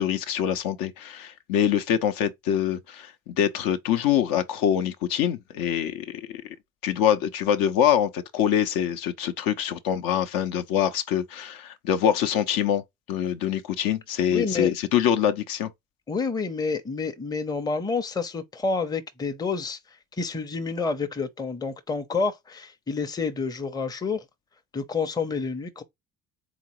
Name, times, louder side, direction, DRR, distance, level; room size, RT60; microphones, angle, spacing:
voice 1, 0.0-6.6 6.8-12.8 13.1-15.7, left 9 dB, 60° left, 0.7 m, -25 dB
voice 2, 14.3-14.7 16.1-19.8 20.2-24.2 24.7-25.8, left 4 dB, 10° left, 0.6 m, -29 dB
3.9 x 3.4 x 3.0 m
hypercardioid pair, 55°, 40 cm